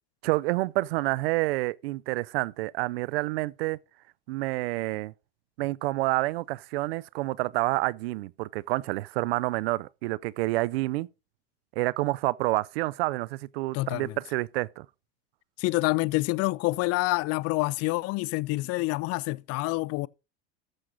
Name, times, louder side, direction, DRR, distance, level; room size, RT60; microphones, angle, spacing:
voice 1, 0.2-3.8 4.3-5.1 5.6-11.1 11.8-14.9, right 20 dB, 85° right, 0.5 m, -28 dB
voice 2, 13.7-14.2 15.6-20.1, left 22 dB, 55° left, 0.5 m, -27 dB
14.0 x 6.4 x 3.9 m
supercardioid pair, 105°, 29 cm